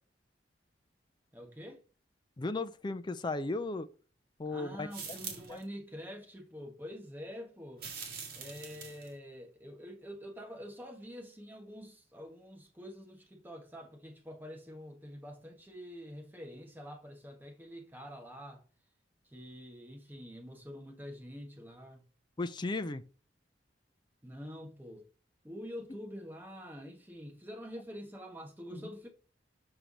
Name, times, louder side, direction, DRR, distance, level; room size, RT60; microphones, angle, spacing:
voice 1, 1.3-1.8 4.4-7.8 8.3-18.6 19.2-22.0 24.2-25.0 25.4-29.1, equal, 10° right, 1.3 m, -46 dB
voice 2, 2.4-3.9 4.4-5.2 5.5-5.6 22.4-23.0 28.7-28.8, left 2 dB, 25° left, 0.4 m, -36 dB
sound 1, 4.9-5.6 7.8-9.1, right 5 dB, 55° right, 1.7 m, -43 dB
5.7 x 4.5 x 3.9 m
head